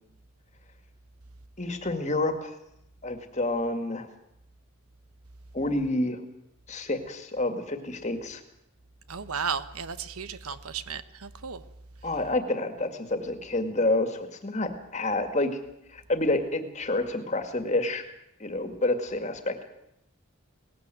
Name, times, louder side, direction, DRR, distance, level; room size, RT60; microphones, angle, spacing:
voice 1, 1.6-2.5 3.0-4.1 5.5-6.2 6.7-8.4 12.0-15.6 15.9-18.0 18.4-19.6, left 2 dB, 30° left, 7 dB, 2.0 m, -28 dB
voice 2, 9.1-11.6, right 6 dB, 85° right, 13 dB, 1.2 m, -34 dB
19.0 x 15.5 x 9.3 m, 0.82 s
head